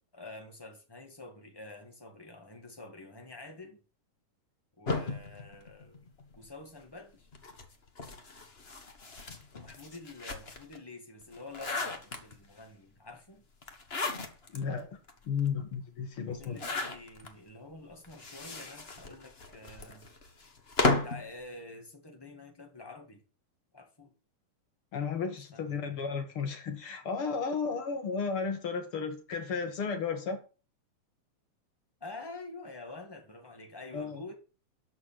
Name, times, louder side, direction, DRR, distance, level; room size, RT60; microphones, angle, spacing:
voice 1, 0.1-3.8 4.8-6.0 6.3-7.3 9.5-13.4 16.3-20.1 21.0-23.2 23.7-24.1 25.5-25.9 32.0-34.3, left 2 dB, 10° left, 1.3 m, -47 dB
sound 1, 4.9-6.5 7.3-10.8 11.2-12.6 13.6-14.6 15.1-15.2 15.4-15.5 16.4-17.3 18.0-21.3, left 3 dB, 70° left, 0.5 m, -35 dB
voice 2, 14.5-15.0 15.2-16.6 24.9-30.4 33.9-34.2, left 5 dB, 45° left, 2.3 m, -33 dB
13.0 x 4.9 x 7.6 m
omnidirectional pair, 3.8 m